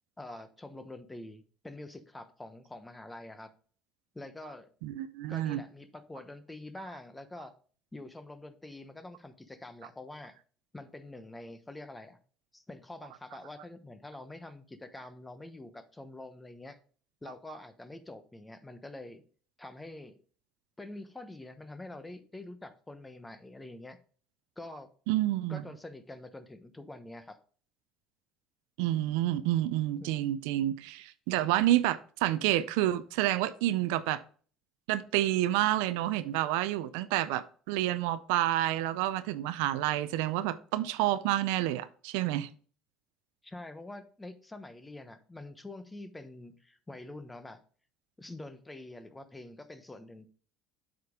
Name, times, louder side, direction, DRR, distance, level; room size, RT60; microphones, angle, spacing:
voice 1, 0.2-3.5 4.1-4.7 5.3-7.5 7.9-10.3 10.7-12.2 12.5-16.8 17.2-19.2 19.6-20.2 20.8-24.0 24.6-24.9 25.5-27.4 30.0-30.1 43.4-47.6 48.2-50.3, left 2 dB, 15° left, 1.0 m, -46 dB
voice 2, 4.8-5.6 25.1-25.6 28.8-34.2 34.9-42.5, right 14 dB, 80° right, 0.4 m, -29 dB
7.8 x 5.1 x 3.6 m
supercardioid pair, 80°, 0 cm